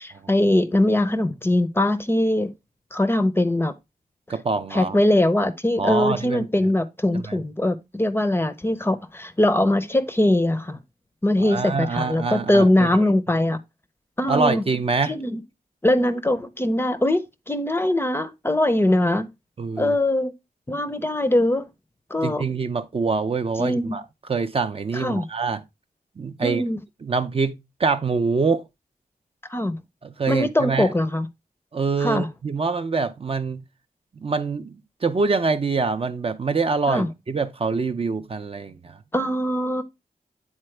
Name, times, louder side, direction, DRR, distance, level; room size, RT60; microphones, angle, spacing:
voice 1, 0.0-2.5 2.9-3.7 4.7-10.8 11.2-13.6 14.2-14.6 15.0-15.4 15.8-19.3 19.8-20.3 20.7-21.7 22.1-22.4 23.6-24.0 24.9-25.3 26.4-26.8 29.5-29.8 30.3-31.3 32.0-32.3 36.9-37.1 39.1-39.8, left 1 dB, 15° left, 0.6 m, -21 dB
voice 2, 4.3-5.0 5.8-6.5 7.1-7.4 11.4-12.9 14.3-15.2 19.6-20.0 22.2-24.0 24.3-25.6 26.2-26.6 27.0-27.5 27.8-28.6 30.0-30.9 31.7-33.6 34.2-39.0, right 4 dB, 40° right, 0.5 m, -25 dB
8.8 x 4.1 x 3.2 m
wide cardioid pair, 140°, 15 cm